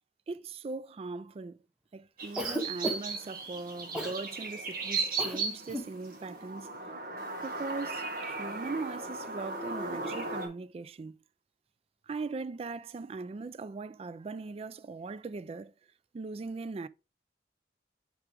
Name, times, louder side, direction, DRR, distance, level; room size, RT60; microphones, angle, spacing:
voice 1, 0.3-1.6 1.9-6.7 7.4-11.2 12.1-15.7 16.1-16.9, right 3 dB, 35° right, 0.3 m, -40 dB
sound 1, 2.2-10.5, right 4 dB, 55° right, 1.4 m, -36 dB
Cough, 2.4-3.2 3.9-4.2 5.2-5.4 5.7-5.9, equal, 5° right, 0.9 m, -34 dB
6.8 x 4.7 x 3.4 m
head